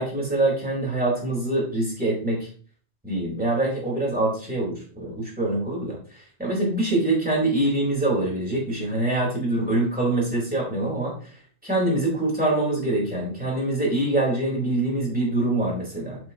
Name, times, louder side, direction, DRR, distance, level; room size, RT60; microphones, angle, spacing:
voice 1, 0.0-2.5 3.0-11.1 11.6-16.2, right 2 dB, 5° right, -4 dB, 3.9 m, -24 dB
8.1 x 7.5 x 2.9 m, 0.42 s
omnidirectional pair, 1.3 m